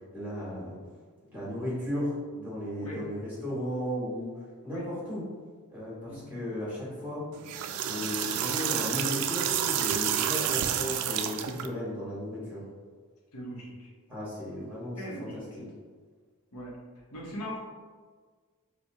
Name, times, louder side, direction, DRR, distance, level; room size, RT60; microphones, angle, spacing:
voice 1, 0.1-0.7 1.3-5.2 5.7-7.2 7.7-12.6 14.1-15.4, left 1 dB, 10° right, -9 dB, 1.5 m, -35 dB
sound 1, 7.3-11.7, right 9 dB, 80° right, 0.3 m, -29 dB
voice 2, 13.3-13.9 15.0-15.6 16.5-16.7 17.1-17.6, equal, 75° left, -4 dB, 0.9 m, -40 dB
4.5 x 2.2 x 2.8 m, 1.5 s
head